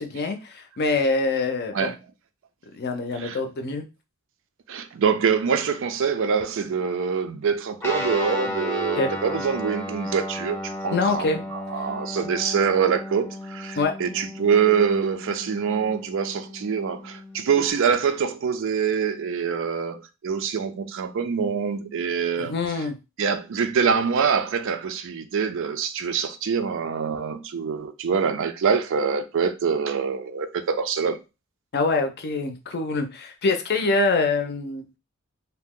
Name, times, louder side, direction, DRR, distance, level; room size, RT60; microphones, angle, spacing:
voice 1, 0.0-1.9 2.7-3.8 9.0-9.1 10.9-11.4 13.8-13.9 22.4-23.0 31.7-34.8, left 3 dB, 50° left, 0.5 m, -25 dB
voice 2, 4.7-22.5 23.2-31.2, right 6 dB, 65° right, 0.4 m, -25 dB
Guitar, 7.8-17.7, left 1 dB, 10° left, 0.6 m, -34 dB
2.7 x 2.0 x 3.6 m
head